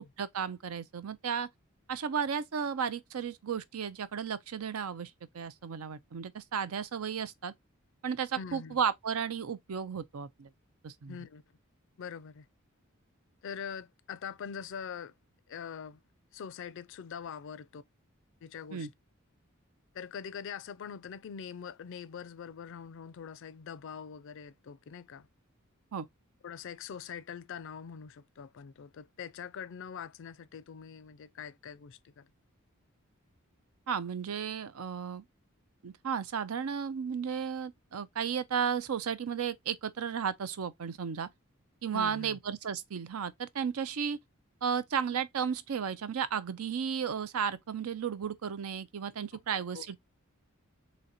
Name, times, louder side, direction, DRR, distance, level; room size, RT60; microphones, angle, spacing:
voice 1, 0.2-1.5 1.9-7.5 8.0-10.5 10.8-11.2 18.7-18.9 25.9-26.1 33.9-35.2 35.8-41.3 41.8-44.2 44.6-50.0, right 7 dB, 85° right, 0.5 m, -34 dB
voice 2, 8.4-8.8 11.1-11.4 12.0-12.5 13.4-15.1 15.5-16.0 16.3-17.8 18.4-18.9 19.9-25.3 26.4-32.3 41.9-42.4 49.3-49.9, left 7 dB, 60° left, 0.4 m, -43 dB
3.9 x 3.2 x 2.8 m
head